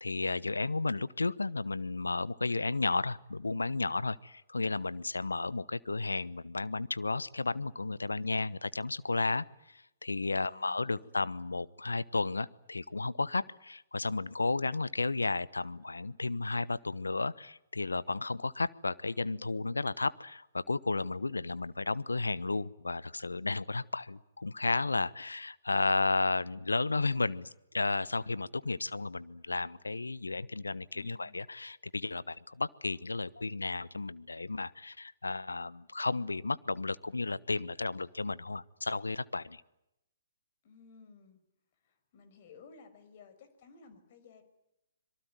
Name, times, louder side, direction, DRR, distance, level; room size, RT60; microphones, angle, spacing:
voice 1, 0.0-39.6, left 3 dB, 85° left, 20 dB, 1.0 m, -33 dB
voice 2, 10.4-11.1 30.9-31.4 40.6-41.5 41.8-44.4, left 5 dB, 45° left, 11 dB, 5.6 m, -56 dB
26.0 x 23.5 x 9.2 m, 0.87 s
figure-of-eight pair, 130°, 0 cm